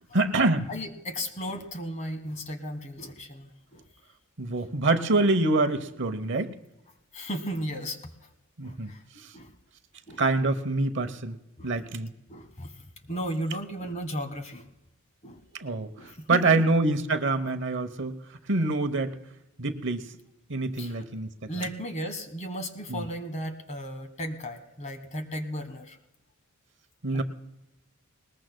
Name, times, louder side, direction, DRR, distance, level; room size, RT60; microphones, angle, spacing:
voice 1, 0.1-0.7 4.4-6.5 8.6-9.3 10.2-11.4 11.6-12.1 15.5-18.2 18.5-19.1 19.6-20.1 20.5-21.3 22.9-23.0 27.0-27.2, right 2 dB, 55° right, 10 dB, 0.9 m, -26 dB
voice 2, 0.7-3.8 4.5-4.6 5.2-5.3 5.9-6.0 7.1-8.3 8.6-9.0 9.3-9.5 10.1-10.2 11.6-11.7 12.3-12.7 13.1-14.7 15.2-15.4 16.0-16.6 20.8-21.0 21.5-26.0 27.1-27.2, equal, 35° left, 8 dB, 1.5 m, -35 dB
20.5 x 20.0 x 2.2 m, 0.92 s
head